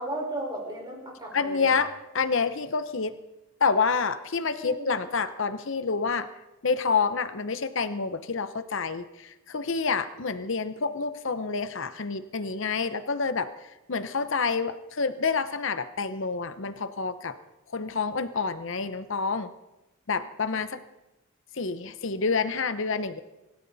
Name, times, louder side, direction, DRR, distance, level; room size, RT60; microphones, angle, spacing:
voice 1, 0.0-1.8 4.5-5.0, right 1 dB, 20° right, -2 dB, 4.9 m, -35 dB
voice 2, 1.3-3.1 3.6-6.3 6.6-13.5 13.9-17.3 17.7-19.5 20.1-20.8 21.5-23.2, left 5 dB, 60° left, 11 dB, 0.8 m, -28 dB
25.0 x 13.5 x 4.1 m, 0.98 s
head